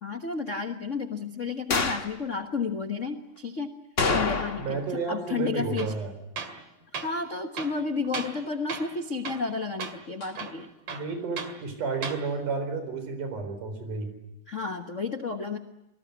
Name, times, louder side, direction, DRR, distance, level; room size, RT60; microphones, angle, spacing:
voice 1, 0.0-3.7 4.1-4.8 5.1-5.9 7.0-10.7 14.5-15.6, left 4 dB, 90° left, 6 dB, 0.6 m, -32 dB
sound 1, 1.7-2.1 4.0-4.8 5.1-5.2 10.2-10.3, left 4 dB, 30° left, 1.5 m, -27 dB
voice 2, 4.6-6.1 10.9-14.1, right 4 dB, 80° right, 8 dB, 5.8 m, -31 dB
Tools, 5.8-6.0 6.4-6.6 6.9-7.1 7.5-8.4 8.7-9.0 9.2-9.5 9.8-10.0 10.3-11.6 11.9-12.2, right 5 dB, 55° right, 3.0 m, -36 dB
26.5 x 20.0 x 9.4 m, 0.89 s
omnidirectional pair, 3.6 m